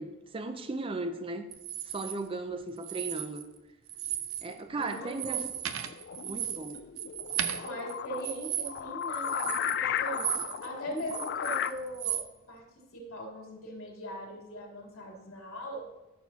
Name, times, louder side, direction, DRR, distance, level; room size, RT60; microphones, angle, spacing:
voice 1, 0.0-1.5 1.9-3.4 4.4-5.9 6.2-6.8, right 2 dB, 25° right, 8 dB, 0.5 m, -37 dB
sound 1, 1.5-2.1 2.8-3.6 3.9-4.5 4.8-10.7 11.0-12.3, right 10 dB, 80° right, 0.6 m, -35 dB
sound 2, 4.7-11.7, left 9 dB, 50° left, 0.3 m, -35 dB
voice 2, 4.8-5.5 7.6-12.2 12.5-12.7 12.9-15.8, equal, 80° left, -3 dB, 3.0 m, -40 dB
13.5 x 6.5 x 2.8 m, 1.0 s
head